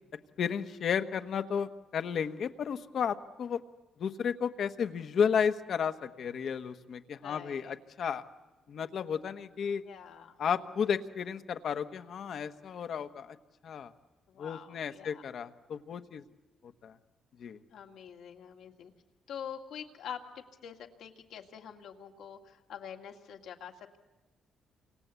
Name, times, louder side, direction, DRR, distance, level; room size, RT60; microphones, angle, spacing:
voice 1, 0.4-3.6 4.0-8.2 8.7-9.8 10.4-13.4 13.6-13.9 14.4-16.2 16.8-17.0 17.4-17.6, left 7 dB, 60° left, 9 dB, 1.2 m, -33 dB
voice 2, 7.2-7.8 9.8-10.4 14.3-15.2 17.7-18.9 19.3-24.0, left 8 dB, 75° left, 3 dB, 2.1 m, -45 dB
28.5 x 25.5 x 8.2 m, 1.2 s
cardioid pair, 90°, 0 cm